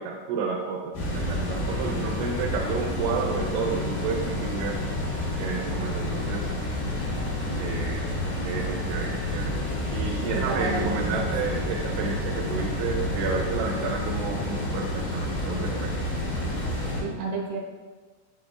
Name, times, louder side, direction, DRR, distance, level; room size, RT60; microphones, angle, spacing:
voice 1, 0.0-4.8 5.4-6.6 7.6-8.1 8.4-9.6 9.9-15.9, right 5 dB, 85° right, 0 dB, 2.9 m, -31 dB
sound 1, 0.9-17.0, left 1 dB, 65° left, 2.6 m, -29 dB
voice 2, 10.2-11.6 17.0-17.6, right 3 dB, 70° right, -1 dB, 3.0 m, -32 dB
9.9 x 5.1 x 2.4 m, 1.4 s
omnidirectional pair, 5.2 m